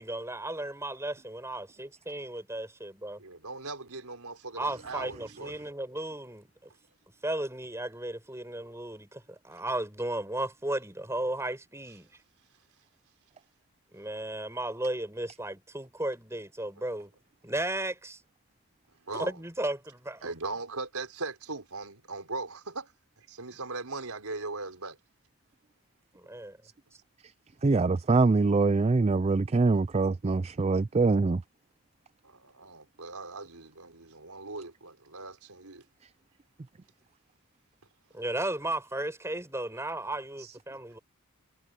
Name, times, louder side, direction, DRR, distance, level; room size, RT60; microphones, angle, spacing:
voice 1, 0.0-3.2 4.6-6.5 7.2-12.1 13.9-17.1 17.4-18.2 19.1-20.3 26.2-26.6 38.1-41.0, right 1 dB, 10° right, 7.0 m, -35 dB
voice 2, 3.2-5.6 19.1-19.4 20.2-22.9 23.3-25.0 32.2-35.8, right 3 dB, 80° right, 4.1 m, -39 dB
voice 3, 27.6-31.4 40.4-40.5, right 3 dB, 30° right, 0.4 m, -24 dB
head